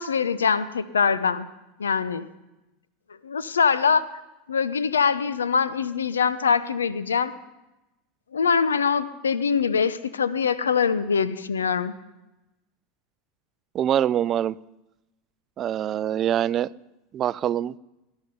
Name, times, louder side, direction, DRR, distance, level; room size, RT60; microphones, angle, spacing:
voice 1, 0.0-1.5 1.8-2.3 3.2-4.0 4.5-7.3 8.3-11.9, left 6 dB, 85° left, 0.8 m, -23 dB
voice 2, 13.7-14.6 15.6-16.7 17.1-17.7, right 10 dB, 40° right, 0.4 m, -24 dB
21.0 x 11.0 x 5.5 m
hypercardioid pair, 85°, 0 cm